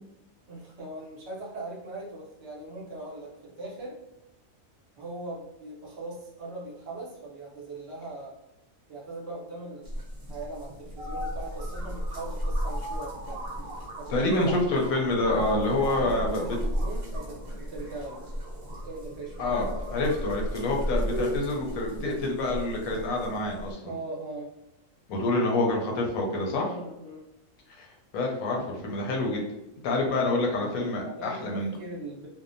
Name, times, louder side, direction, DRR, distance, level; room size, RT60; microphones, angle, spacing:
voice 1, 0.5-4.0 5.0-8.3 8.9-10.0 10.3-13.4 14.0-14.5 15.6-18.2 18.8-19.6 23.9-24.5 26.6-27.2 31.0-32.3, right 2 dB, 60° right, -4 dB, 0.8 m, -40 dB
sound 1, 9.8-23.7, equal, 25° right, 0.6 m, -35 dB
sound 2, 11.0-21.3, right 1 dB, 90° right, 1.1 m, -41 dB
voice 2, 14.1-16.6 19.4-23.9 25.1-26.7 27.8-29.4 29.8-31.7, left 2 dB, 85° left, 0 dB, 1.0 m, -27 dB
2.7 x 2.0 x 2.5 m, 0.91 s
omnidirectional pair, 1.4 m